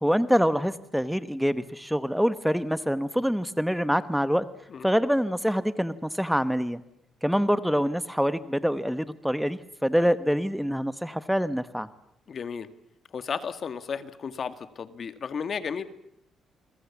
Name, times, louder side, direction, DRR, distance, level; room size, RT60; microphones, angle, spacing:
voice 1, 0.0-4.4 4.8-6.8 7.2-11.9, equal, ahead, 13 dB, 1.1 m, -25 dB
voice 2, 12.3-12.7 13.1-15.8, left 6 dB, 50° left, 11 dB, 1.8 m, -34 dB
29.0 x 22.0 x 7.2 m, 0.79 s
cardioid pair, 90°, 0 cm